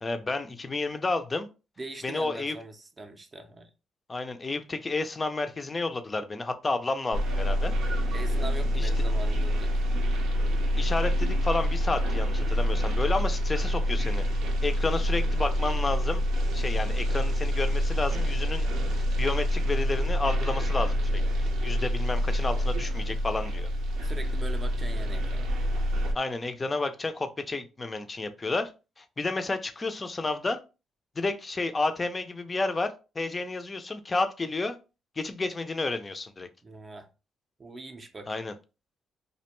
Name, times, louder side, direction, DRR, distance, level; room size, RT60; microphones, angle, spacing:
voice 1, 0.0-1.5 2.0-2.6 4.1-7.7 8.8-8.9 10.7-14.2 14.6-16.2 16.5-21.0 21.6-23.7 26.1-28.7 29.0-30.6 31.2-34.8 35.2-36.5 38.3-38.5, left 3 dB, 25° left, 0.4 m, -31 dB
voice 2, 1.8-3.7 8.1-9.7 24.0-25.5 36.6-37.1 37.6-38.3, right 2 dB, 30° right, 0.5 m, -41 dB
sound 1, 7.1-26.1, equal, 80° right, 0.5 m, -27 dB
2.5 x 2.1 x 2.9 m
cardioid pair, 90°, 0 cm